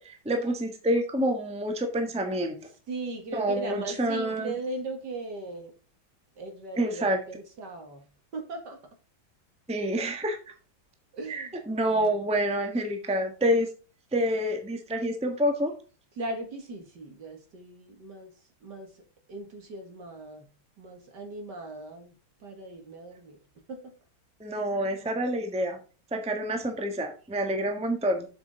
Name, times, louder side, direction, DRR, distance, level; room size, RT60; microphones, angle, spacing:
voice 1, 0.0-2.6 3.3-4.5 6.8-7.2 9.7-10.4 11.3-13.7 14.1-15.7 24.4-25.8 26.1-28.3, equal, 5° right, 5 dB, 1.2 m, -27 dB
voice 2, 2.9-5.7 6.4-8.1 8.3-8.8 11.1-11.5 11.9-12.1 16.2-18.3 18.6-18.9 19.3-20.5 20.8-22.1 22.4-23.4 23.7-23.8, right 2 dB, 60° right, 4 dB, 2.4 m, -38 dB
7.5 x 7.3 x 3.6 m, 0.36 s
omnidirectional pair, 2.1 m